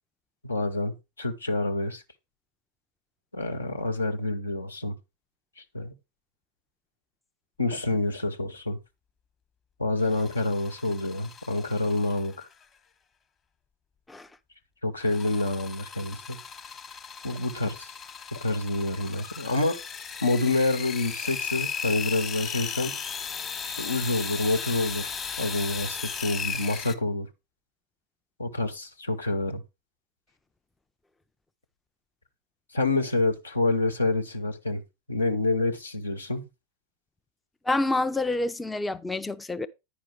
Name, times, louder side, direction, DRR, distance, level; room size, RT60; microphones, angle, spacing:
voice 1, 0.4-2.0 3.3-4.9 5.7-5.9 7.6-8.8 9.8-12.4 14.8-16.4 17.2-17.9 18.3-19.8 20.2-22.9 23.7-27.3 28.4-29.6 32.7-34.8 35.1-36.4, left 2 dB, 80° left, 1.0 m, -27 dB
sound 1, 10.0-12.5 15.0-26.9, left 6 dB, 25° left, 1.0 m, -36 dB
voice 2, 37.7-39.7, left 2 dB, 10° left, 0.4 m, -27 dB
10.0 x 5.0 x 4.5 m
figure-of-eight pair, 90°, 0 cm